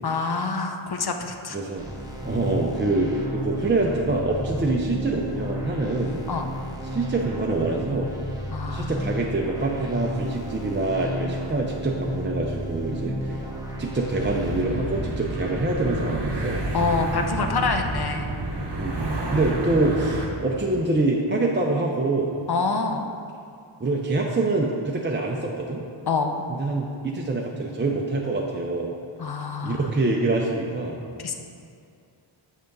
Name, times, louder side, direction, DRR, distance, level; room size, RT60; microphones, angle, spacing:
voice 1, 0.0-1.6 6.3-6.4 8.5-8.9 16.7-18.3 22.5-23.0 26.1-26.4 29.2-29.9 31.2-31.3, left 4 dB, 50° left, 5 dB, 0.6 m, -26 dB
voice 2, 1.5-1.9 2.2-6.2 6.8-8.1 8.7-13.5 13.8-16.6 18.8-22.3 23.8-25.8 26.5-28.9 29.6-31.0, right 2 dB, 25° right, -1 dB, 0.5 m, -25 dB
sound 1, 1.8-14.7, equal, 10° right, 1.0 m, -33 dB
sound 2, 14.2-20.3, right 2 dB, 55° right, 0.8 m, -29 dB
6.5 x 3.4 x 5.2 m, 2.4 s
wide cardioid pair, 40°, 49 cm